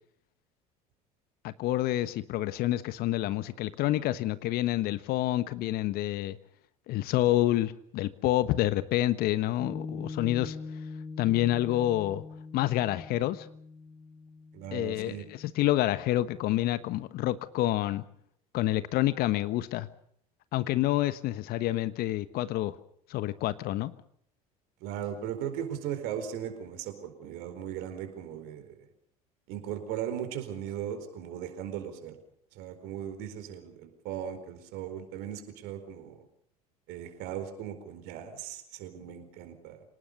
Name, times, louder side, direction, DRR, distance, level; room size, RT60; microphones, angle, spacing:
voice 1, 1.4-6.4 6.9-10.6 11.2-12.2 12.5-13.5 14.7-18.0 18.5-19.9 20.5-22.7 23.1-23.9, left 15 dB, 55° left, 14 dB, 1.3 m, -28 dB
Piano, 9.6-16.3, left 4 dB, 20° left, 4.4 m, -43 dB
voice 2, 14.5-15.2 24.8-28.7 29.5-32.2 32.5-36.2 36.9-39.8, right 9 dB, 60° right, 8 dB, 4.6 m, -38 dB
26.0 x 19.0 x 6.9 m, 0.68 s
figure-of-eight pair, 65°, 19 cm